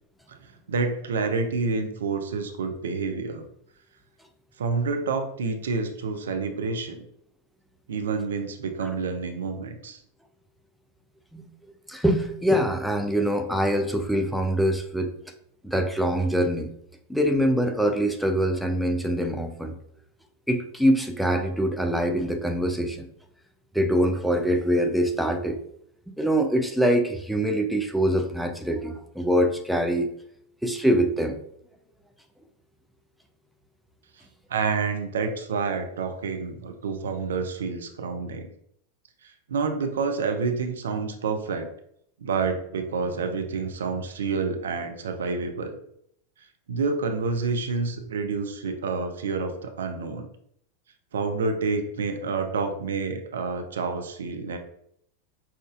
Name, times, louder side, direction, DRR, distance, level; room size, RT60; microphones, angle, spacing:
voice 1, 0.7-3.4 4.6-7.0 7.9-10.0 34.5-38.5 39.2-41.7 42.2-45.8 46.7-50.3 51.1-54.6, right 4 dB, 65° right, 6 dB, 0.5 m, -28 dB
voice 2, 11.9-15.1 15.6-16.7 17.1-19.8 20.5-23.1 23.7-25.6 26.1-30.1 30.6-31.4, equal, ahead, 4 dB, 0.4 m, -24 dB
5.7 x 2.5 x 2.4 m, 0.71 s
figure-of-eight pair, 90°, 0 cm